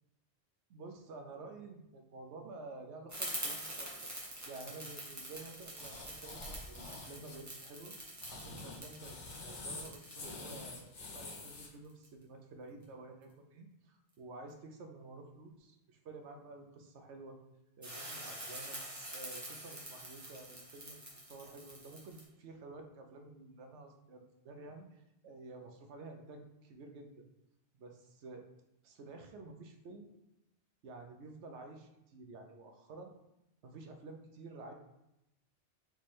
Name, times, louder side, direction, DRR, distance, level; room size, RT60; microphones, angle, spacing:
voice 1, 0.7-7.9 8.3-9.2 9.4-17.4 17.8-18.8 19.1-27.3 27.7-28.5 28.8-30.1 30.8-33.1 33.6-34.7, right 3 dB, 80° right, 4 dB, 1.0 m, -51 dB
sound 1, 3.1-12.1 17.8-22.2, right 1 dB, 15° right, 0.9 m, -46 dB
sound 2, 5.8-7.4 8.0-11.7, left 3 dB, 90° left, 1.2 m, -47 dB
3.6 x 3.1 x 4.3 m, 0.87 s
omnidirectional pair, 1.2 m